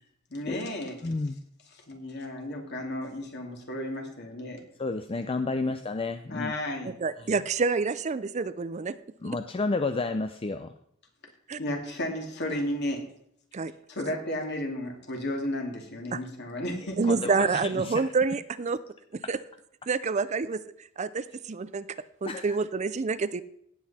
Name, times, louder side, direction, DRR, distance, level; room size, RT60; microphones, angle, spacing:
voice 1, 0.3-1.0 1.9-4.6 5.5-5.7 6.3-7.0 11.6-13.0 13.9-17.0, left 1 dB, 55° left, 1 dB, 2.6 m, -33 dB
voice 2, 1.0-1.4 4.8-6.6 9.2-10.7 17.1-18.0 22.3-22.6, left 3 dB, 25° left, 9 dB, 0.5 m, -31 dB
voice 3, 7.0-9.0 11.5-11.6 13.5-13.7 16.1-16.2 17.0-18.8 19.1-19.4 19.9-20.6 21.0-21.9 22.2-23.4, right 4 dB, 35° right, 15 dB, 0.4 m, -27 dB
17.0 x 8.0 x 4.2 m, 0.73 s
head